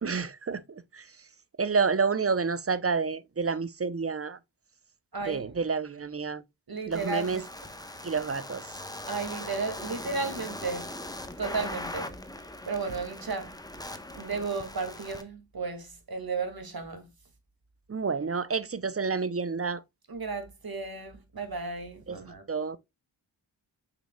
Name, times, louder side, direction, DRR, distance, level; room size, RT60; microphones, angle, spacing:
voice 1, 0.0-1.0 1.6-4.4 5.2-6.4 6.9-7.4 8.0-8.6 17.9-19.8 22.1-22.2 22.5-22.8, right 5 dB, 30° right, 0.7 m, -29 dB
voice 2, 5.1-5.5 6.7-7.5 9.1-10.9 11.4-12.1 12.7-13.5 14.1-17.1 20.1-22.4, right 4 dB, 50° right, 2.2 m, -34 dB
sound 1, 6.9-15.2, left 1 dB, 10° left, 1.0 m, -40 dB
7.1 x 5.9 x 2.3 m
cardioid pair, 60°, 46 cm